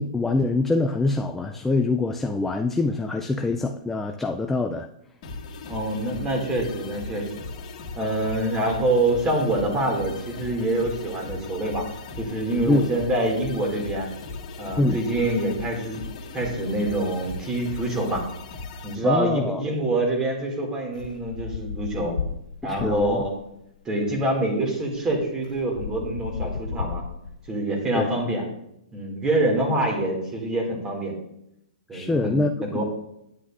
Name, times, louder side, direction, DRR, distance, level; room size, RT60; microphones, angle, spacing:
voice 1, 0.0-4.9 12.7-12.9 14.8-15.0 19.0-19.6 22.6-23.2 27.9-28.1 31.9-32.9, left 2 dB, 5° left, 5 dB, 0.3 m, -24 dB
sound 1, 5.2-18.9, left 3 dB, 45° left, 1.8 m, -38 dB
voice 2, 5.6-7.4 8.0-11.9 12.2-14.1 14.6-16.0 16.3-18.2 18.8-22.2 22.6-23.2 23.8-27.0 27.5-28.4 28.9-31.2 31.9-32.4 32.7-32.9, right 1 dB, 15° right, 0 dB, 2.2 m, -25 dB
sound 2, 20.9-23.5 24.5-24.6 24.9-27.5, left 6 dB, 90° left, 0.4 m, -34 dB
9.8 x 9.4 x 2.5 m, 0.80 s
hypercardioid pair, 145°, 4 cm